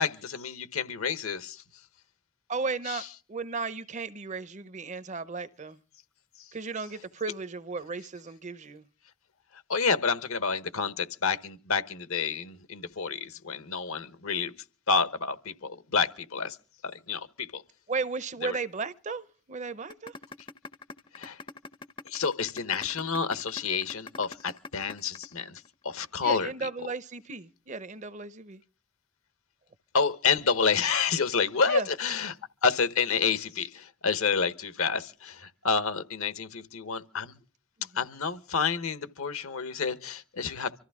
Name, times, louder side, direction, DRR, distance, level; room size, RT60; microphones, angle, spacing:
voice 1, 0.0-1.6 2.9-3.0 9.7-14.5 14.9-16.6 16.8-17.6 18.4-18.6 21.2-21.4 22.1-26.5 29.9-32.4 32.6-37.4 37.9-40.8, left 5 dB, 65° left, 1.1 m, -29 dB
voice 2, 2.5-3.0 3.3-5.8 6.5-8.8 17.9-20.1 26.2-28.6 31.7-31.9, right 4 dB, 30° right, 0.7 m, -35 dB
sound 1, 19.9-25.9, left 4 dB, 25° left, 0.6 m, -42 dB
25.0 x 14.5 x 3.6 m
head